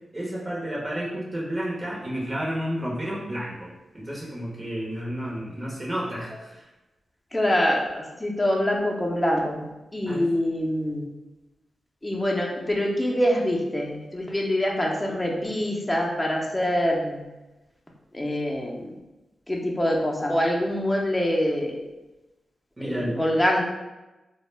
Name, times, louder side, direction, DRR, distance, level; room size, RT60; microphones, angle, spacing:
voice 1, 0.1-6.7 10.1-10.3 22.8-23.2, equal, 30° right, -5 dB, 0.8 m, -31 dB
voice 2, 7.3-11.0 12.0-17.2 18.1-18.9 19.5-21.8 22.8-23.6, left 1 dB, 15° left, -1 dB, 0.6 m, -25 dB
2.1 x 2.0 x 3.2 m, 1.0 s
cardioid pair, 50°, 0 cm